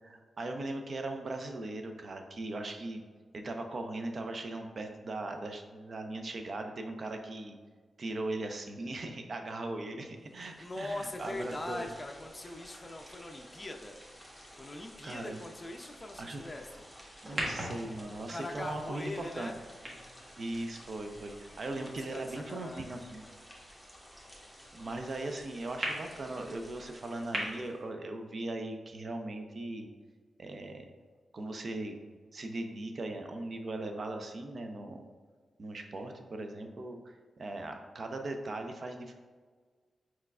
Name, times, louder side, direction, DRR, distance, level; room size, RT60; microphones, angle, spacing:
voice 1, 0.0-3.0 3.3-7.6 8.0-11.9 15.0-15.4 16.2-16.5 17.2-19.5 20.4-23.2 24.7-29.9 30.4-30.9 31.3-32.0 32.3-35.1 35.6-39.1, right 2 dB, 55° right, 5 dB, 0.5 m, -39 dB
sound 1, 10.2-27.8, equal, 10° right, 1.1 m, -53 dB
voice 2, 10.5-14.0 14.6-16.8 18.3-19.6 21.7-22.9, left 2 dB, 25° left, 3 dB, 0.4 m, -42 dB
sound 2, 17.3-21.7 22.3-22.4 25.8-25.9 27.3-27.4, right 1 dB, 40° right, 1.3 m, -40 dB
4.5 x 4.2 x 2.4 m, 1.5 s
cardioid pair, 60°, 0 cm